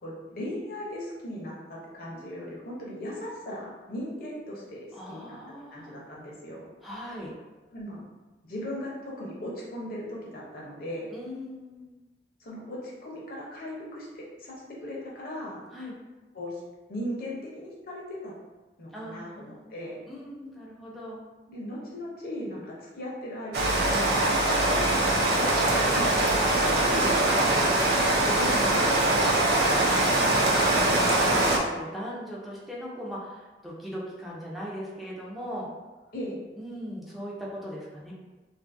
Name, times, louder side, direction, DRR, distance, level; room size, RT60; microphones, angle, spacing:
voice 1, 0.0-5.4 5.7-6.7 7.7-8.0 8.5-11.1 12.4-15.6 16.3-16.6 16.9-18.3 18.8-20.0 21.5-24.2 25.1-26.4 26.6-27.6 27.9-29.8 36.1-36.4, left 1 dB, 55° left, -4 dB, 0.7 m, -38 dB
voice 2, 4.9-6.0 6.8-7.4 11.1-11.9 15.7-16.0 18.9-19.7 20.1-21.2 29.9-35.7 36.6-38.1, equal, ahead, -6 dB, 0.4 m, -39 dB
Rain, 23.5-31.6, right 1 dB, 60° right, 0.4 m, -23 dB
2.6 x 2.5 x 2.5 m, 1.2 s
head